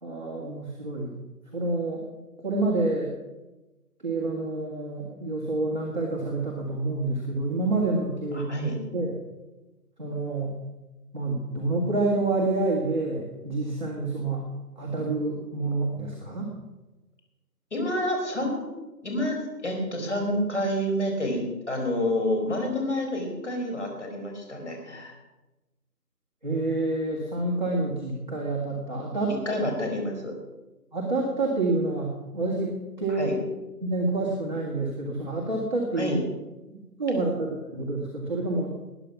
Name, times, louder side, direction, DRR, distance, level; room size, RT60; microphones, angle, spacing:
voice 1, 0.0-1.1 1.5-2.0 2.4-3.1 4.0-8.7 8.9-9.1 10.0-10.5 11.1-14.4 14.8-16.5 26.4-29.5 30.9-33.4 33.8-36.1 36.7-38.8, right 2 dB, 30° right, -4 dB, 2.0 m, -28 dB
voice 2, 8.3-8.8 17.7-18.6 19.0-25.1 29.5-30.3 33.1-33.4 35.9-36.2, left 1 dB, 45° left, 2 dB, 4.3 m, -28 dB
20.0 x 8.8 x 5.9 m, 1.1 s
figure-of-eight pair, 180°, 48 cm